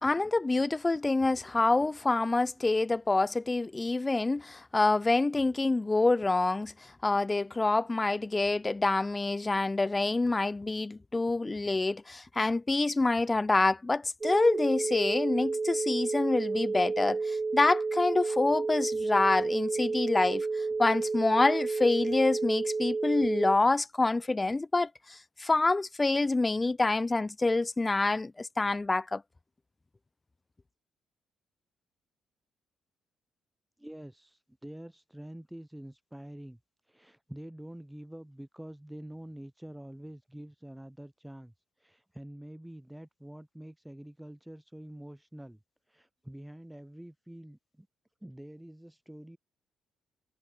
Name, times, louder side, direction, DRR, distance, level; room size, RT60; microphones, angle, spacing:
voice 1, 0.0-29.2, left 3 dB, 20° left, 1.6 m, -27 dB
sound 1, 14.2-23.6, right 3 dB, 25° right, 0.7 m, -31 dB
voice 2, 33.8-36.6 36.8-45.6 45.9-47.9 48.2-49.4, right 1 dB, 5° right, 6.3 m, -46 dB
cardioid pair, 90°, 0 cm